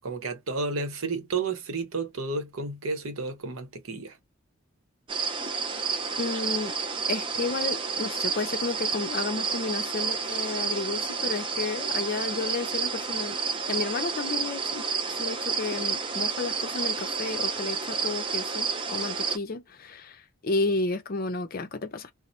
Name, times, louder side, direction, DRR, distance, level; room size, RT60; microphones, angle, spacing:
voice 1, 0.0-4.2, right 3 dB, 70° right, 0.7 m, -32 dB
sound 1, 5.1-19.4, right 5 dB, 25° right, 0.4 m, -30 dB
voice 2, 6.2-6.8 7.1-13.4 13.7-22.1, left 3 dB, 40° left, 0.5 m, -32 dB
2.6 x 2.0 x 3.0 m
head